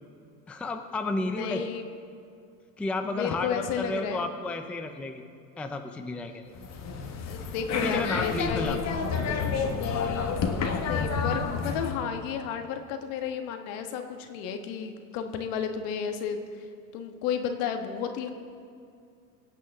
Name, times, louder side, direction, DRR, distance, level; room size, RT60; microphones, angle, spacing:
voice 1, 0.5-1.6 2.8-5.2 5.6-6.5 7.5-8.8, left 2 dB, 5° left, 5 dB, 0.5 m, -32 dB
voice 2, 1.2-1.8 3.0-4.2 7.3-8.8 10.8-16.7 16.9-18.3, left 7 dB, 60° left, 6 dB, 1.6 m, -32 dB
sound 1, 6.5-12.0, left 5 dB, 30° left, 1.4 m, -29 dB
23.5 x 8.3 x 3.7 m, 2.4 s
hypercardioid pair, 105°, 50 cm